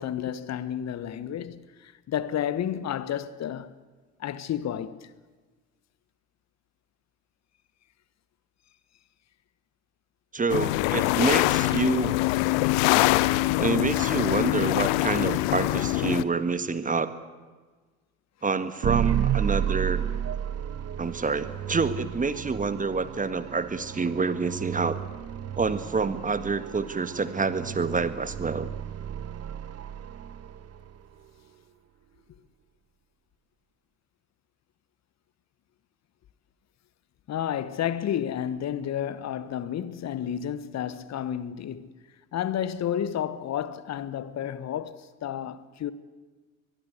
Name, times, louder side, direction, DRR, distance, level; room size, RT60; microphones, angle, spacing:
voice 1, 0.0-3.7 4.2-5.1 37.3-41.9 42.3-45.9, left 10 dB, 40° left, 1.4 m, -31 dB
voice 2, 10.3-12.2 13.6-17.1 18.4-20.0 21.0-25.0 25.6-28.7, right 4 dB, 20° right, 1.7 m, -27 dB
sound 1, 10.5-16.2, left 18 dB, 65° left, 1.0 m, -24 dB
sound 2, 18.8-31.0, right 9 dB, 40° right, 1.5 m, -32 dB
22.5 x 22.0 x 8.3 m
figure-of-eight pair, 55°, 39 cm